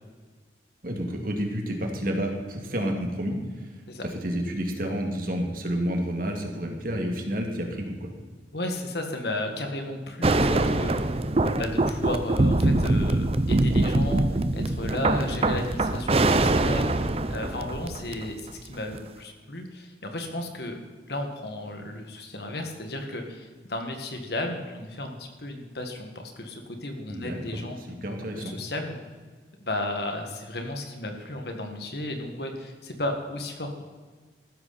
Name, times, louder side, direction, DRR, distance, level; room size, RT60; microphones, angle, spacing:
voice 1, 0.8-3.7 4.2-8.1 27.1-28.5, equal, 50° right, 2 dB, 2.4 m, -30 dB
voice 2, 8.5-11.1 11.6-14.3 14.5-20.8 21.1-27.8 28.3-29.0 29.6-33.8, left 1 dB, 65° left, 4 dB, 2.0 m, -34 dB
sound 1, 10.2-18.4 18.9-19.0, right 2 dB, 35° right, 0.6 m, -23 dB
14.5 x 13.5 x 4.3 m, 1.5 s
head